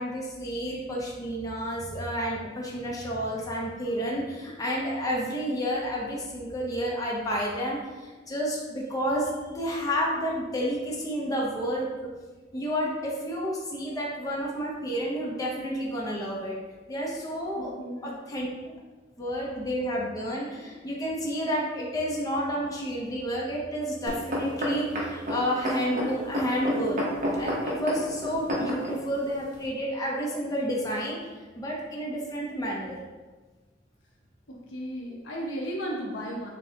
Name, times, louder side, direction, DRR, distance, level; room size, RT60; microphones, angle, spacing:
voice 1, 0.0-11.9 12.5-16.6 16.9-17.7 18.0-18.7 19.2-27.0 27.4-31.2 31.5-33.0, equal, 20° left, -4 dB, 0.7 m, -30 dB
voice 2, 17.5-18.2 34.5-36.5, equal, 80° left, -2 dB, 0.9 m, -35 dB
sound 1, 24.1-29.0 29.6-29.7, left 1 dB, 45° right, 1.0 m, -29 dB
6.5 x 2.3 x 2.8 m, 1.3 s
head